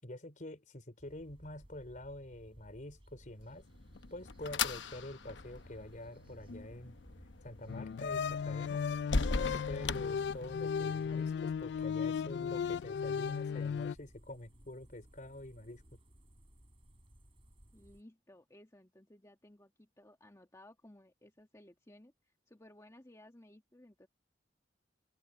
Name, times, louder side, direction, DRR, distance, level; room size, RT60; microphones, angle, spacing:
voice 1, 0.0-3.7 4.1-7.0 7.4-8.8 9.3-15.8, left 1 dB, 45° left, 4.1 m, -47 dB
sound 1, 1.0-18.0, equal, 30° right, 3.3 m, -60 dB
sound 2, 3.5-10.9, left 4 dB, 85° left, 0.9 m, -39 dB
sound 3, 7.7-14.0, left 6 dB, 65° left, 0.3 m, -36 dB
voice 2, 17.7-22.1 22.5-24.1, left 1 dB, 15° left, 1.7 m, -58 dB
head